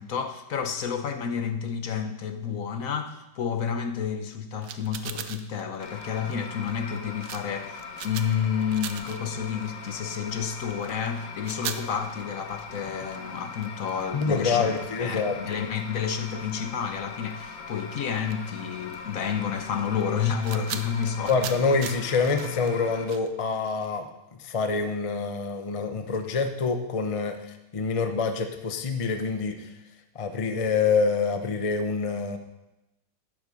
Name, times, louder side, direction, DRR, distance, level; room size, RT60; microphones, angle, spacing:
voice 1, 0.0-21.6, left 7 dB, 55° left, 1.1 m, -30 dB
sound 1, 4.6-16.9 17.2-17.4 17.7-23.9, right 9 dB, 75° right, 1.3 m, -41 dB
sound 2, 5.8-23.1, left 5 dB, 80° left, 1.8 m, -41 dB
voice 2, 14.1-15.4 21.3-24.1 24.4-27.4 27.7-29.7 30.1-32.4, left 4 dB, 40° left, 0.5 m, -26 dB
12.0 x 9.5 x 5.2 m
omnidirectional pair, 1.9 m